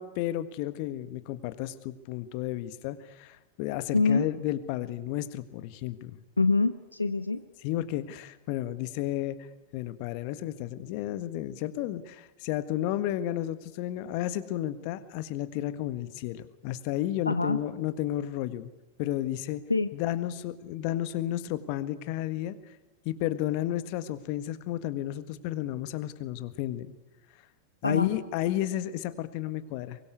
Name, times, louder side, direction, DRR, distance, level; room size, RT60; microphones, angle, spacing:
voice 1, 0.0-6.2 7.6-9.4 9.7-18.7 19.0-19.6 19.9-22.6 23.0-26.9 27.8-30.0, left 13 dB, 50° left, 12 dB, 1.6 m, -32 dB
voice 2, 3.9-4.3 6.4-7.4 17.3-17.6 19.7-19.9 27.8-28.1, left 3 dB, 85° left, 11 dB, 0.9 m, -25 dB
24.0 x 21.5 x 8.3 m, 0.98 s
figure-of-eight pair, 95°, 0 cm